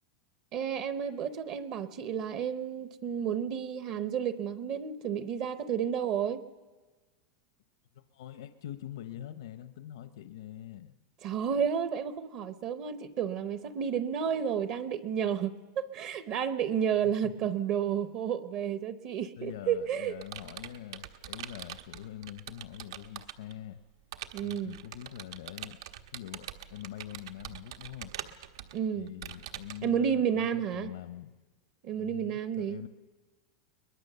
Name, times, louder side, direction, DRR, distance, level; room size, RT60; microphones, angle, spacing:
voice 1, 0.5-6.4 11.2-20.2 24.3-24.8 28.7-29.1 29.8-30.9 31.8-32.9, right 8 dB, 30° right, 12 dB, 0.7 m, -31 dB
voice 2, 8.1-10.9 17.2-17.3 19.4-23.8 24.4-25.8 26.1-28.1 28.9-31.3 31.9-32.9, left 12 dB, 75° left, 10 dB, 0.8 m, -44 dB
Computer keyboard, 19.5-23.5 24.1-29.9, right 11 dB, 75° right, 1.3 m, -44 dB
22.5 x 20.5 x 6.8 m, 1.3 s
supercardioid pair, 180°, 2 cm